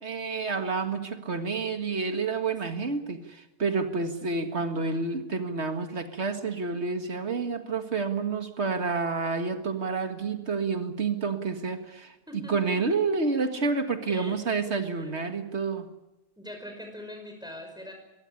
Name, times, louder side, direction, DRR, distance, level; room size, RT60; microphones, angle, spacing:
voice 1, 0.0-15.9, right 4 dB, 75° right, 7 dB, 2.1 m, -29 dB
voice 2, 2.7-3.1 4.4-5.0 12.3-12.7 14.0-14.4 14.9-15.4 16.4-17.9, equal, 5° right, 4 dB, 5.5 m, -43 dB
23.5 x 16.5 x 9.9 m, 0.98 s
omnidirectional pair, 1.1 m